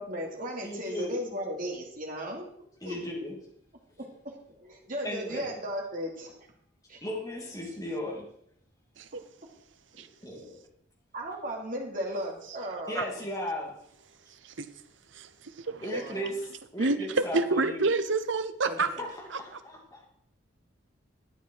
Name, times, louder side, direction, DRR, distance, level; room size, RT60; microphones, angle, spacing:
voice 1, 0.0-2.5 2.8-3.0 4.0-6.3 6.9-7.0 9.9-10.0 11.1-13.1 15.8-16.3 18.6-19.1, equal, 45° right, -1 dB, 2.8 m, -36 dB
voice 2, 0.6-1.1 2.8-3.4 5.0-5.5 7.0-8.3 10.2-10.5 12.9-13.7 15.8-17.8 19.0-20.0, left 1 dB, 20° left, -2 dB, 2.6 m, -36 dB
voice 3, 15.1-16.0 16.8-18.9, right 3 dB, 70° right, 11 dB, 0.9 m, -28 dB
12.0 x 9.2 x 4.6 m, 0.71 s
head